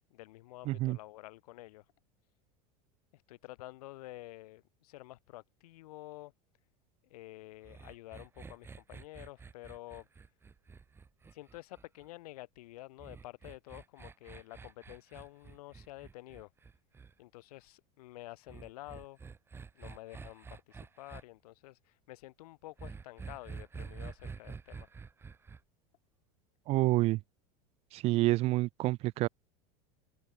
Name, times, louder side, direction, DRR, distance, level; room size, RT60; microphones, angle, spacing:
voice 1, 0.1-1.8 3.1-6.3 7.0-10.1 11.3-16.5 17.2-19.2 19.7-24.9, left 18 dB, 85° left, 2.8 m, -50 dB
voice 2, 0.7-1.0 26.7-27.2 27.9-29.3, right 18 dB, 35° right, 0.4 m, -28 dB
sound 1, 7.6-12.1 13.0-17.1 18.5-21.2 22.8-25.6, right 5 dB, 10° right, 1.2 m, -48 dB
open air
supercardioid pair, 155°, 19 cm